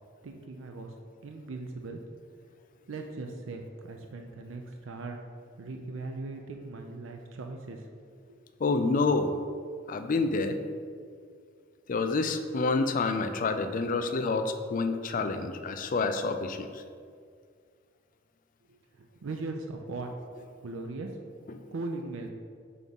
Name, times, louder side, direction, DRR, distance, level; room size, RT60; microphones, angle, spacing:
voice 1, 0.2-0.9 1.2-2.0 2.9-5.2 5.6-7.9 8.3-8.4 18.7-20.1 20.6-21.1 21.7-22.3, right 3 dB, 80° right, 4 dB, 0.5 m, -39 dB
voice 2, 8.6-9.3 9.9-10.6 11.9-16.8 21.5-21.6, left 3 dB, 45° left, 8 dB, 0.4 m, -28 dB
6.0 x 3.6 x 5.3 m, 2.1 s
head